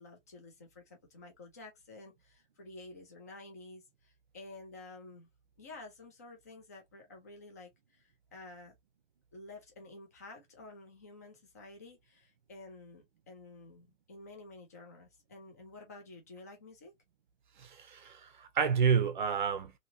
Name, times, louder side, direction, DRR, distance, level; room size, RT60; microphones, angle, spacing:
voice 1, 0.0-5.3 5.6-8.8 9.3-16.9, left 2 dB, 15° left, 0.5 m, -51 dB
voice 2, 17.6-19.7, right 6 dB, 40° right, 0.6 m, -30 dB
2.9 x 2.8 x 2.6 m
hypercardioid pair, 160°, 38 cm